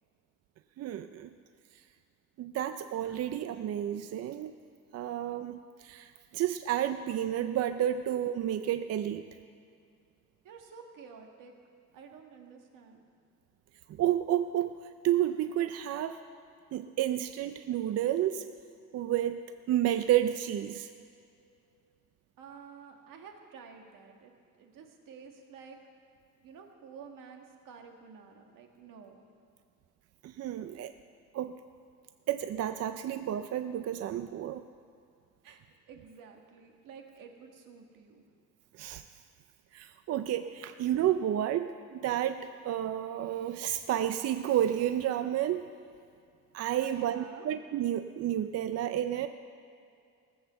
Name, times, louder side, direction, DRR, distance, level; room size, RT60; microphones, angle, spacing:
voice 1, 0.8-1.3 2.4-4.5 4.9-9.3 14.0-14.7 15.0-16.2 16.7-18.4 18.9-19.4 19.7-20.9 30.2-30.9 31.3-31.5 32.3-34.7 38.8-39.0 39.7-45.7 46.5-49.3, right 11 dB, 50° right, 10 dB, 0.4 m, -31 dB
voice 2, 10.4-11.5 11.9-13.0 22.4-25.8 26.4-29.2 35.4-38.2 46.8-47.5, right 6 dB, 85° right, 3 dB, 1.7 m, -51 dB
18.0 x 8.0 x 6.9 m, 2.4 s
cardioid pair, 170°, 32 cm